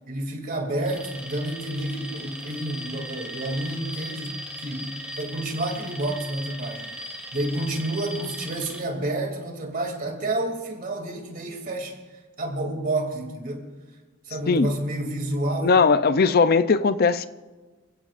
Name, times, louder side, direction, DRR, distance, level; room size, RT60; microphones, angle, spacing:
voice 1, 0.1-12.0 12.4-13.7 14.3-15.8, right 1 dB, 45° right, 2.7 m, -29 dB
Alarm, 0.8-8.8, right 1 dB, 5° right, 1.8 m, -38 dB
voice 2, 15.6-17.3, left 4 dB, 45° left, 0.5 m, -19 dB
28.0 x 15.5 x 2.5 m
head